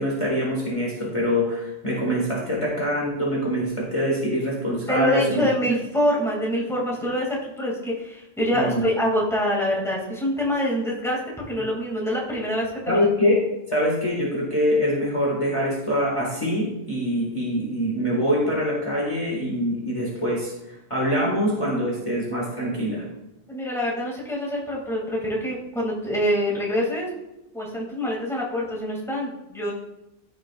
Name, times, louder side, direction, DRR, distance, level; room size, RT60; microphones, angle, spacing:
voice 1, 0.0-5.5 8.5-8.9 12.9-23.0, equal, 30° left, -4 dB, 1.8 m, -24 dB
voice 2, 4.9-11.2 11.5-13.0 23.5-27.1 27.5-29.7, equal, ahead, -4 dB, 2.2 m, -25 dB
14.0 x 6.3 x 2.4 m, 0.92 s
omnidirectional pair, 1.1 m